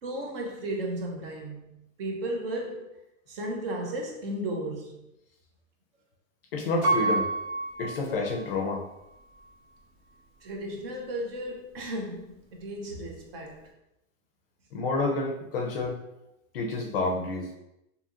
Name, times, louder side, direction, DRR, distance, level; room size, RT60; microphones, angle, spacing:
voice 1, 0.0-3.0 3.3-5.1 10.4-13.7, right 1 dB, 45° right, 2 dB, 0.6 m, -35 dB
voice 2, 6.5-7.3 7.8-8.8 14.7-16.0 16.5-17.5, left 3 dB, 45° left, 1 dB, 0.4 m, -29 dB
Piano, 6.8-8.8 9.4-9.5, right 2 dB, 80° right, 0.9 m, -29 dB
2.8 x 2.7 x 2.4 m, 0.87 s
supercardioid pair, 170°, 40 cm